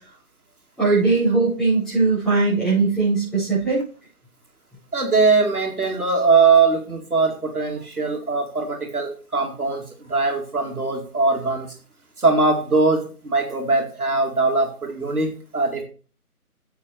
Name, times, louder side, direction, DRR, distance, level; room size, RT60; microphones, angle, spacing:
voice 1, 0.8-3.8, right 3 dB, ahead, -13 dB, 5.8 m, -19 dB
voice 2, 4.9-11.7 12.2-15.8, right 4 dB, 70° right, 2 dB, 2.5 m, -21 dB
9.6 x 7.8 x 4.5 m, 0.38 s
figure-of-eight pair, 150°, 45 cm